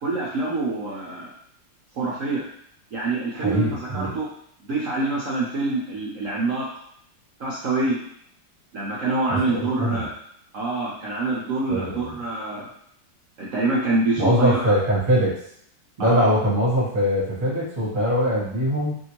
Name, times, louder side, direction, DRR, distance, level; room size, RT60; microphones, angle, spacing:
voice 1, 0.0-1.3 2.0-2.4 2.9-4.3 4.6-6.7 7.4-8.0 8.7-10.1 10.5-12.7 13.4-14.7 16.0-16.3, right 3 dB, 70° right, -6 dB, 0.7 m, -26 dB
voice 2, 3.3-4.1 9.3-10.0 11.7-12.2 14.2-15.3 16.0-19.0, equal, 30° right, -6 dB, 1.0 m, -22 dB
2.8 x 2.6 x 2.9 m, 0.67 s
omnidirectional pair, 2.1 m